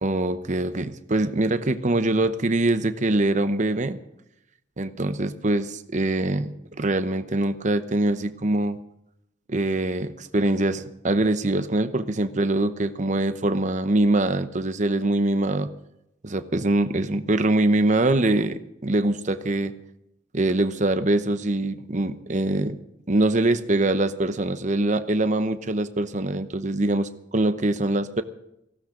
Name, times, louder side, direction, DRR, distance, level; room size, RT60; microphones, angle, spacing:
voice 1, 0.0-4.0 4.8-8.8 9.5-15.7 16.2-19.7 20.3-22.8 23.1-28.2, right 2 dB, 40° right, 10 dB, 0.9 m, -23 dB
18.0 x 16.0 x 3.8 m, 0.82 s
head